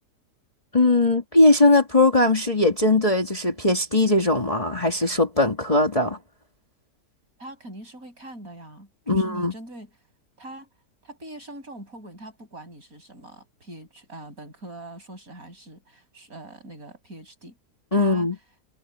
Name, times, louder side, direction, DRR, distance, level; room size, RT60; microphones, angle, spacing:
voice 1, 0.7-6.2 9.1-9.5 17.9-18.4, left 2 dB, 20° left, 2.3 m, -19 dB
voice 2, 7.4-9.9 10.4-10.7 11.0-17.6 17.9-18.3, right 1 dB, 55° right, 7.9 m, -42 dB
omnidirectional pair, 1.8 m